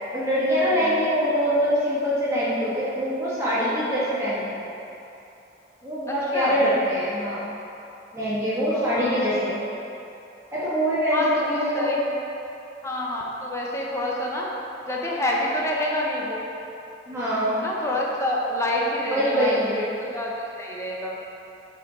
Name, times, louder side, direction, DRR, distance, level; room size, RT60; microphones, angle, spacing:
voice 1, 0.1-4.7 5.8-7.4 8.1-9.5 10.5-12.0 17.1-17.6 19.1-19.8, equal, 15° right, -11 dB, 1.4 m, -24 dB
voice 2, 0.7-1.1 6.1-6.6 8.7-9.2 11.1-12.1 12.8-14.5 14.9-16.4 17.5-21.2, left 1 dB, 15° left, -3 dB, 0.8 m, -28 dB
6.8 x 4.5 x 4.9 m, 2.9 s
head